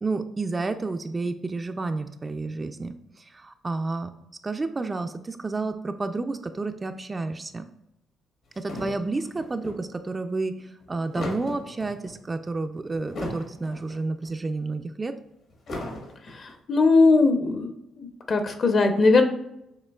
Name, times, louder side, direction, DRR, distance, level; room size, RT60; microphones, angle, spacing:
voice 1, 0.0-4.1 4.4-7.7 8.6-15.1, right 3 dB, 25° right, 8 dB, 0.3 m, -30 dB
sound 1, 8.5-9.8 10.8-12.2 12.9-14.0 14.2-14.3 15.5-16.5, left 1 dB, 65° left, 1.3 m, -37 dB
voice 2, 16.3-17.7 18.0-19.2, left 3 dB, 45° left, 6 dB, 0.7 m, -20 dB
6.6 x 2.9 x 2.3 m, 0.82 s
cardioid pair, 90°, 0 cm